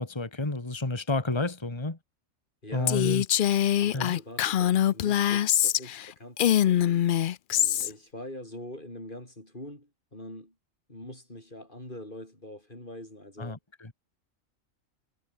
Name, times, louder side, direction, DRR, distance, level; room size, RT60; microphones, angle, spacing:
voice 1, 0.0-2.0 2.7-3.2 3.9-4.1 13.4-13.9, left 2 dB, 20° left, 2.1 m, -30 dB
voice 2, 2.6-3.3 3.8-7.0 7.5-10.5 10.9-13.6, left 1 dB, 35° left, 8.1 m, -43 dB
Female speech woman speaking, 2.9-6.1 6.4-7.9, left 11 dB, 65° left, 0.5 m, -24 dB
omnidirectional pair, 1.4 m